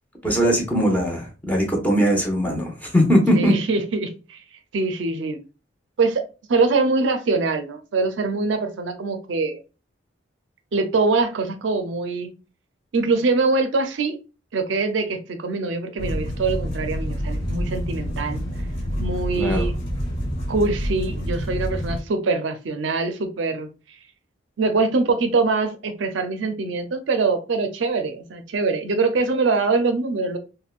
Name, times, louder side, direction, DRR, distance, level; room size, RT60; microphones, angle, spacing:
voice 1, 0.2-3.6 19.4-19.7, equal, 10° left, 0 dB, 0.7 m, -20 dB
voice 2, 3.3-4.4 4.7-5.4 6.0-6.2 6.5-9.6 10.7-12.3 12.9-14.2 14.5-18.4 19.0-19.7 20.5-23.7 24.6-30.4, right 3 dB, 70° right, 7 dB, 0.5 m, -23 dB
sound 1, 16.0-22.0, equal, 30° left, 1.2 m, -27 dB
3.5 x 2.2 x 2.3 m, 0.32 s
head